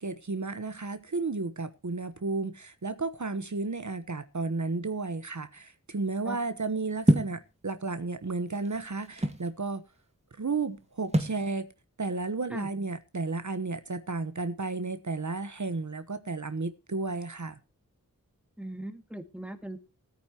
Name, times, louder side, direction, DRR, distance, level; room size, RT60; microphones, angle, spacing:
voice 1, 0.0-9.8 10.4-11.7 12.0-17.6, right 3 dB, 60° right, 1.1 m, -33 dB
sound 1, 7.1-7.4 8.3-9.5 11.1-11.4, right 1 dB, 20° right, 2.2 m, -25 dB
voice 2, 18.6-19.8, right 1 dB, 5° right, 1.9 m, -39 dB
20.0 x 9.4 x 2.9 m
wide cardioid pair, 55°, 34 cm